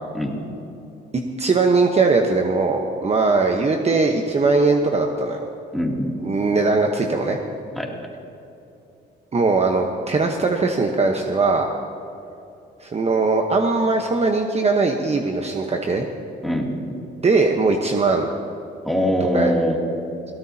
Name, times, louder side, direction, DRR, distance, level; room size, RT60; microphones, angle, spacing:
voice 1, 0.1-0.5 5.7-6.1 7.8-7.9 16.4-17.0 18.8-19.8, equal, ahead, -1 dB, 2.7 m, -22 dB
voice 2, 1.4-5.4 6.2-7.4 9.3-11.7 12.8-16.1 17.2-18.3 19.3-19.5, right 3 dB, 30° right, 2 dB, 1.1 m, -20 dB
22.0 x 17.0 x 2.9 m, 2.8 s
cardioid pair, 90°, 20 cm